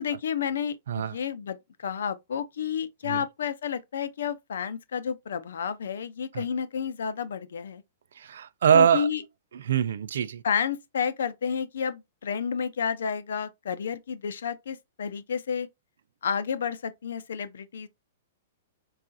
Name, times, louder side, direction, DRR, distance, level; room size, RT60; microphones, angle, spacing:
voice 1, 0.0-7.8 8.7-9.2 10.4-15.7 16.2-17.9, left 7 dB, 85° left, 0.6 m, -31 dB
voice 2, 8.2-9.1 9.5-10.4, right 8 dB, 75° right, 0.4 m, -23 dB
4.7 x 2.4 x 2.6 m
hypercardioid pair, 155°, 0 cm